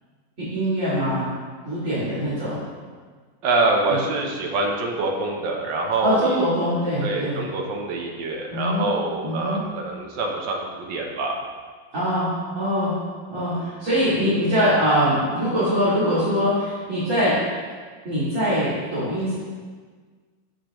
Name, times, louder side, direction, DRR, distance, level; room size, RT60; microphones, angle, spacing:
voice 1, 0.4-1.2 1.6-2.6 3.9-4.0 6.0-7.4 8.5-8.9 9.2-9.6 11.9-12.9 13.3-17.3 18.0-19.3, equal, 40° right, -13 dB, 3.0 m, -23 dB
voice 2, 3.4-6.4 7.0-11.4, right 2 dB, 75° right, 0 dB, 1.6 m, -25 dB
14.0 x 5.0 x 3.0 m, 1.5 s
omnidirectional pair, 2.0 m